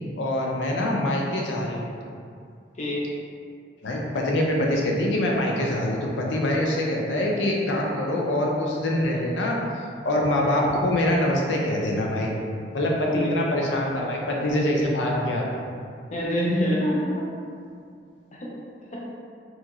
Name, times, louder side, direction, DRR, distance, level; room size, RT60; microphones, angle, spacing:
voice 1, 0.2-1.9 3.8-12.4 12.7-15.5, left 1 dB, 85° left, -1 dB, 0.5 m, -24 dB
voice 2, 2.8-3.1 13.1-13.3 16.1-17.3 18.3-18.5 18.9-19.1, equal, 40° left, -5 dB, 0.6 m, -26 dB
2.9 x 2.7 x 2.4 m, 2.3 s
head